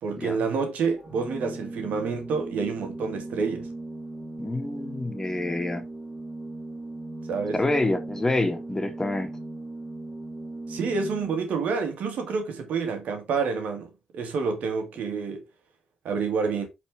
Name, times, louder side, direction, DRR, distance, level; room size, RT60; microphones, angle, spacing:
voice 1, 0.0-3.7 7.3-7.6 10.7-15.4 16.0-16.7, right 5 dB, 80° right, 1.8 m, -28 dB
Organ, 1.0-11.7, right 2 dB, 15° right, 2.5 m, -38 dB
voice 2, 4.4-5.9 7.5-9.3, left 2 dB, 20° left, 2.0 m, -27 dB
8.5 x 4.2 x 3.6 m
cardioid pair, 65°, 3 cm